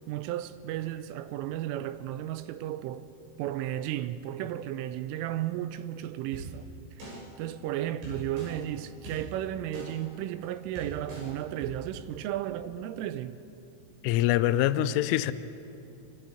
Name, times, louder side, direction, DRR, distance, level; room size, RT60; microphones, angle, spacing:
voice 1, 0.1-3.1 3.4-6.7 7.0-7.1 7.4-13.4, right 12 dB, 85° right, 3.2 m, -34 dB
sound 1, 6.3-6.4 7.0-7.1 8.0-8.5 9.0-9.2 9.7-9.8 10.4-10.5 10.8-11.2 11.6-11.7, right 2 dB, 60° right, 8.6 m, -41 dB
voice 2, 14.0-15.3, left 13 dB, 85° left, 3.1 m, -24 dB
25.0 x 24.5 x 5.0 m
omnidirectional pair, 5.8 m